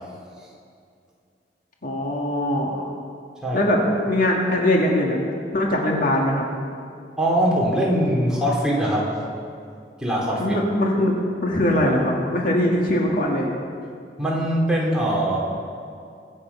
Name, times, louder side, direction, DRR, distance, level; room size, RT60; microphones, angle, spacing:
voice 1, 1.8-2.8 3.5-3.8 4.0-5.2 5.5-6.5 10.4-11.1 11.4-13.5, left 1 dB, 55° left, -1 dB, 1.9 m, -21 dB
voice 2, 7.2-9.2 10.0-10.6 14.2-15.4, equal, 5° right, -5 dB, 3.5 m, -22 dB
23.5 x 8.6 x 5.6 m, 2.4 s
head